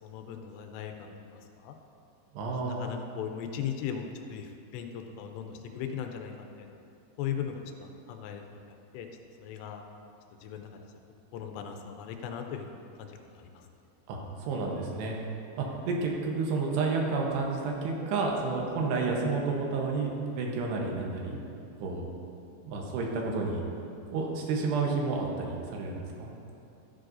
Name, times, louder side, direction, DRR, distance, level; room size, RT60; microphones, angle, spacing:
voice 1, 0.0-1.8 2.6-6.8 7.2-9.1 9.4-9.8 10.4-10.7 11.3-13.5, left 8 dB, 80° left, 4 dB, 2.8 m, -38 dB
voice 2, 2.3-2.9 14.1-15.2 15.6-21.4 21.8-22.1 22.6-23.6 24.1-26.3, right 3 dB, 75° right, -1 dB, 3.1 m, -30 dB
13.0 x 9.5 x 2.6 m, 2.7 s
omnidirectional pair, 5.0 m